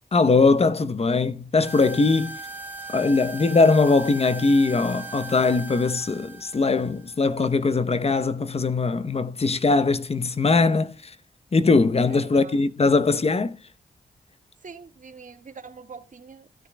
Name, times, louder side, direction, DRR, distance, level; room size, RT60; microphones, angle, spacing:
voice 1, 0.1-2.4 2.9-11.1 11.5-13.6, left 3 dB, 40° left, 0.9 m, -21 dB
sound 1, 1.6-7.9, right 3 dB, 10° right, 3.1 m, -39 dB
voice 2, 12.1-12.6 14.6-16.7, right 5 dB, 55° right, 1.7 m, -44 dB
16.0 x 10.0 x 2.2 m
cardioid pair, 60°, 16 cm